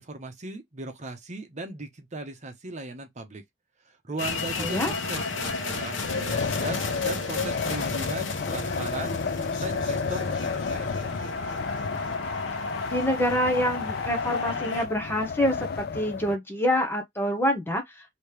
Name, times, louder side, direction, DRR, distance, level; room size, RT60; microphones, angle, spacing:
voice 1, 0.0-3.4 4.1-9.2 9.4-10.9, right 2 dB, 40° right, 0.9 m, -38 dB
sound 1, 4.2-14.9, left 3 dB, 80° left, 1.0 m, -33 dB
voice 2, 4.6-4.9 12.9-17.8, equal, 10° left, 0.8 m, -26 dB
Wind, 6.0-16.4, left 5 dB, 55° left, 0.4 m, -32 dB
3.2 x 2.9 x 3.2 m
head